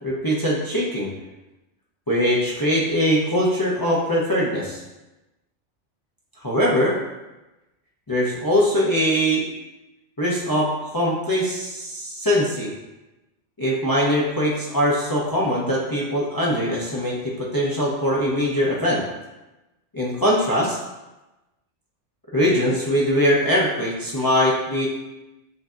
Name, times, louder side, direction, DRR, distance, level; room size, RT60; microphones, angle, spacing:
voice 1, 0.0-1.1 2.1-4.8 6.4-7.0 8.1-9.4 10.2-12.7 13.6-19.0 19.9-20.8 22.3-24.9, equal, 25° left, -5 dB, 0.5 m, -22 dB
7.9 x 2.7 x 2.4 m, 1.0 s
omnidirectional pair, 1.2 m